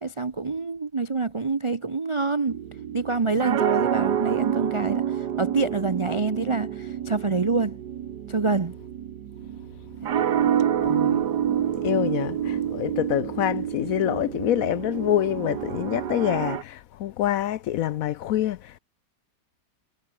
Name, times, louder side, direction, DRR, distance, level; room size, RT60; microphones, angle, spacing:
voice 1, 0.0-2.6 2.9-7.8 8.3-8.7, right 4 dB, 45° right, 0.4 m, -26 dB
sound 1, 2.5-16.6, right 9 dB, 90° right, 1.8 m, -28 dB
voice 2, 10.8-11.2 11.8-18.8, left 12 dB, 70° left, 0.9 m, -26 dB
omnidirectional pair, 1.7 m